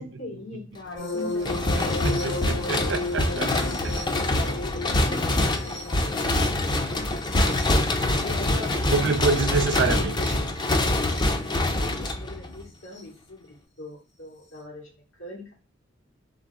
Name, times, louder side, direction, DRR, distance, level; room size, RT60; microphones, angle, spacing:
voice 1, 0.0-2.6 3.3-4.1 4.3-7.9 8.2-9.4 9.7-15.5, left 2 dB, 90° left, 2.3 m, -41 dB
sound 1, 1.0-9.6 11.0-11.2 12.9-13.0, left 2 dB, 65° left, 1.4 m, -35 dB
sound 2, 1.4-12.6, left 1 dB, 25° left, 0.5 m, -25 dB
voice 2, 1.8-3.5 7.0-7.1 8.9-10.4, right 3 dB, 60° right, 0.5 m, -26 dB
3.9 x 3.2 x 3.5 m
head